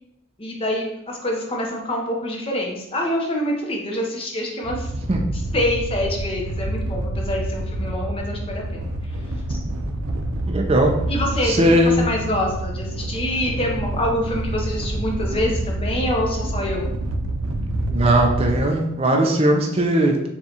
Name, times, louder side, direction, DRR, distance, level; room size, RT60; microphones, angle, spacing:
voice 1, 0.4-4.9 5.5-8.9 9.5-9.6 11.1-16.9, left 1 dB, 25° left, 0 dB, 0.7 m, -26 dB
sound 1, 4.6-18.6, right 1 dB, 80° right, 0.5 m, -27 dB
voice 2, 10.5-10.9 11.4-12.1 17.9-20.3, right 1 dB, 25° right, 1 dB, 0.4 m, -18 dB
6.7 x 2.3 x 2.8 m, 0.82 s
head